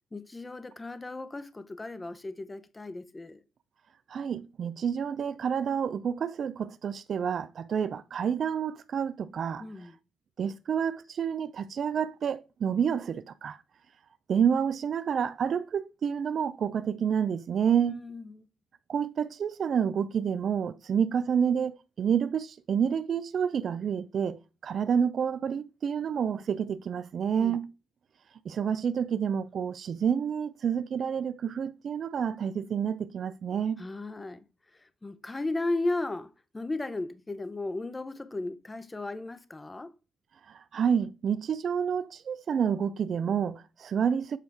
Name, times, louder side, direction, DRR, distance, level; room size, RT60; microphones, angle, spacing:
voice 1, 0.1-3.4 9.6-10.0 17.8-18.5 27.4-27.6 33.8-34.4 34.7-39.9, left 2 dB, 20° left, 0.6 m, -35 dB
voice 2, 4.1-9.7 10.4-13.6 14.3-18.0 18.9-27.7 28.5-33.8 40.5-44.4, right 7 dB, 55° right, 0.4 m, -29 dB
7.4 x 4.4 x 3.4 m
cardioid pair, 90°, 0 cm